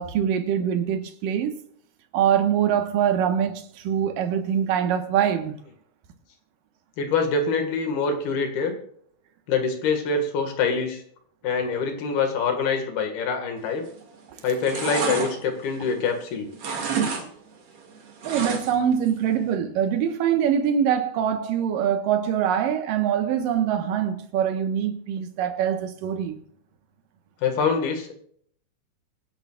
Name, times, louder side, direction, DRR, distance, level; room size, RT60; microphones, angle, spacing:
voice 1, 0.0-1.6 2.1-5.5 18.2-26.4, right 9 dB, 65° right, 2.6 m, -24 dB
voice 2, 7.0-8.8 9.5-11.0 11.4-13.8 14.4-16.5 27.4-28.1, left 4 dB, 70° left, 3.7 m, -25 dB
sound 1, 13.8-14.2 14.5-16.2 16.5-17.3 17.5-18.9 19.3-19.4, right 5 dB, 45° right, 2.6 m, -29 dB
25.5 x 10.5 x 2.4 m
omnidirectional pair, 4.7 m